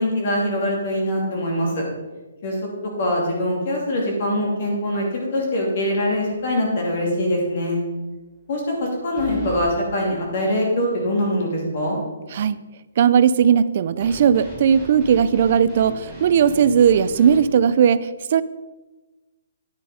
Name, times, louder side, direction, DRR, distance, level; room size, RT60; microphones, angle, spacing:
voice 1, 0.0-1.8 2.4-2.6 2.8-7.8 8.5-12.0, left 1 dB, 35° left, -2 dB, 2.8 m, -23 dB
sound 1, 6.1-6.5 6.9-7.0 9.2-9.7 14.0-17.4, right 1 dB, 10° left, 3.0 m, -37 dB
voice 2, 13.0-18.4, right 8 dB, 35° right, 15 dB, 0.4 m, -17 dB
10.5 x 7.4 x 5.0 m, 1.1 s
hypercardioid pair, 180°, 0 cm